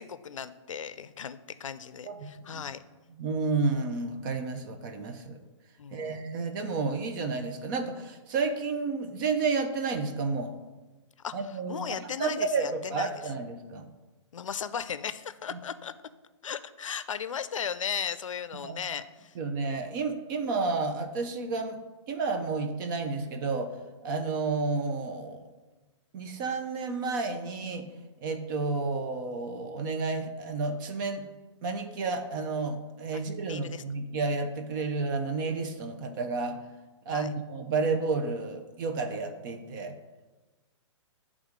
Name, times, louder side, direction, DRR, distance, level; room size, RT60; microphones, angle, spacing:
voice 1, 0.0-2.8 5.8-6.2 11.2-13.1 14.3-15.9 16.4-19.4 33.1-33.8 37.1-37.3, left 7 dB, 90° left, 13 dB, 0.5 m, -36 dB
voice 2, 2.0-2.6 3.2-5.4 5.9-10.5 11.3-13.9 18.6-18.8 19.4-21.8 22.1-23.7 24.0-25.4 26.1-27.9 28.2-31.2 31.6-36.6 37.1-40.0, right 4 dB, 40° right, 6 dB, 0.7 m, -31 dB
8.2 x 3.6 x 5.0 m, 1.2 s
hypercardioid pair, 135°, 16 cm